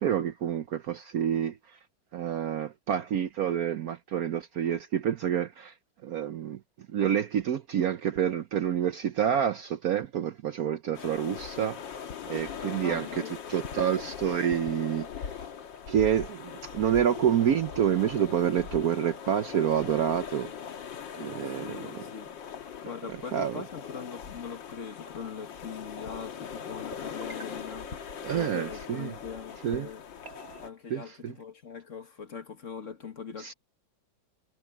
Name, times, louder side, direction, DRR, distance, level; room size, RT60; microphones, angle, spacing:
voice 1, 0.0-1.8 2.1-5.7 6.0-6.6 6.9-11.8 12.3-13.1 13.5-15.1 15.9-20.5 21.2-21.9 23.3-23.6 28.2-29.1 29.6-29.9 30.9-31.3 33.4-33.5, right 9 dB, 60° right, 1.0 m, -28 dB
sound 1, 10.9-30.7, left 7 dB, 75° left, 2.2 m, -41 dB
voice 2, 12.8-13.4 13.7-13.8 21.5-22.3 22.8-27.9 28.3-30.0 30.6-33.5, left 6 dB, 45° left, 1.8 m, -41 dB
sound 2, 26.9-29.0 30.2-30.6, right 3 dB, 35° right, 1.9 m, -49 dB
omnidirectional pair, 2.0 m